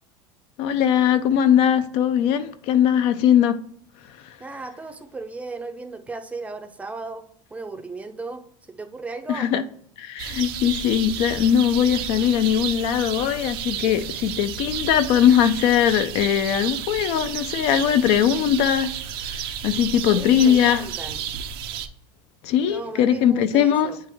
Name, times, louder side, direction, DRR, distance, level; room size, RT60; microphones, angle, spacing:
voice 1, 0.6-3.6 9.3-9.6 10.0-19.0 19.2-20.8 22.4-23.9, left 9 dB, 55° left, 0.5 m, -20 dB
voice 2, 4.4-9.5 20.2-21.3 22.6-24.0, right 3 dB, 10° right, 0.5 m, -36 dB
sound 1, 10.2-21.9, right 9 dB, 85° right, 0.6 m, -32 dB
8.9 x 3.3 x 3.5 m
supercardioid pair, 140°, 12 cm